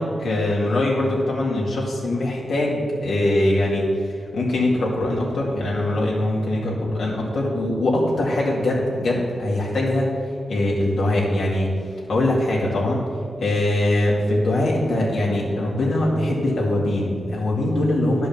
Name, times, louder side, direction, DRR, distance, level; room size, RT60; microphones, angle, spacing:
voice 1, 0.0-3.8 4.3-10.1 10.5-11.7 12.1-13.0 13.4-18.3, left 1 dB, 85° left, -5 dB, 2.2 m, -22 dB
10.5 x 5.4 x 7.3 m, 2.4 s
cardioid pair, 85°, 0 cm